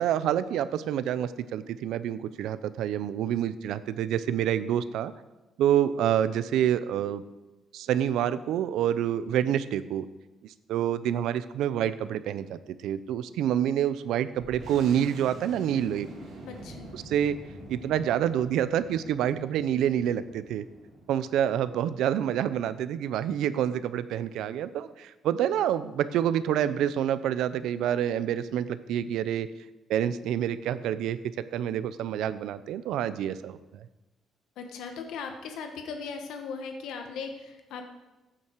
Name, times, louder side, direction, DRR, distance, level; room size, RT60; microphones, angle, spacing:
voice 1, 0.0-5.1 5.6-7.2 7.7-10.0 10.4-16.1 16.9-17.4 17.7-20.6 21.1-29.5 29.9-31.2 31.5-33.8, right 10 dB, 75° right, 14 dB, 0.7 m, -27 dB
sound 1, 14.4-23.6, right 1 dB, 50° right, 4.6 m, -47 dB
voice 2, 16.4-16.9 34.6-37.8, left 5 dB, 80° left, 4 dB, 1.4 m, -38 dB
15.5 x 8.8 x 4.7 m, 1.1 s
cardioid pair, 170°, 0 cm